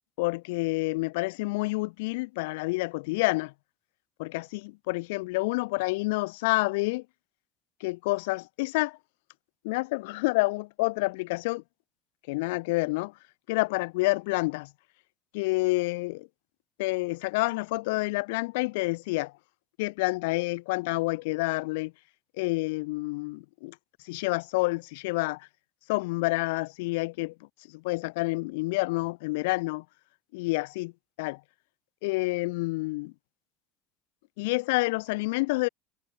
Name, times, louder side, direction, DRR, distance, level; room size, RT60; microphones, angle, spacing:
voice 1, 0.2-3.5 4.2-7.0 7.8-9.0 9.6-11.6 12.3-13.1 13.5-14.7 15.3-16.3 16.8-19.3 19.8-21.9 22.4-23.8 24.0-25.5 25.9-27.3 27.7-29.8 30.3-30.9 31.2-31.4 32.0-33.1 34.4-35.7, left 24 dB, 85° left, 0.3 m, -28 dB
cardioid pair, 150°, 0 cm